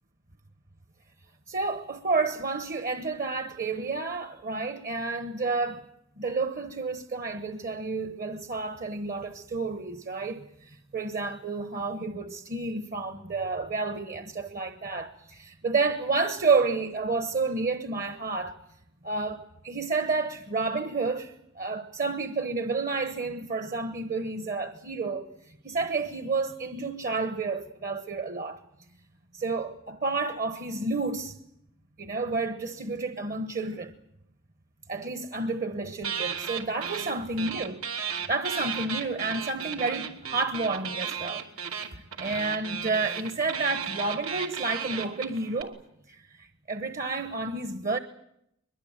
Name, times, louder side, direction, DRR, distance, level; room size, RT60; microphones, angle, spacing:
voice 1, 1.5-5.9 6.2-18.6 19.0-28.6 29.3-31.4 32.0-33.9 34.9-37.8 38.3-41.4 41.9-45.8 46.1-48.0, right 3 dB, 40° right, 1.1 m, -30 dB
sound 1, 36.0-37.1 37.4-45.6, right 7 dB, 85° right, 2.9 m, -34 dB
22.5 x 22.5 x 8.9 m
head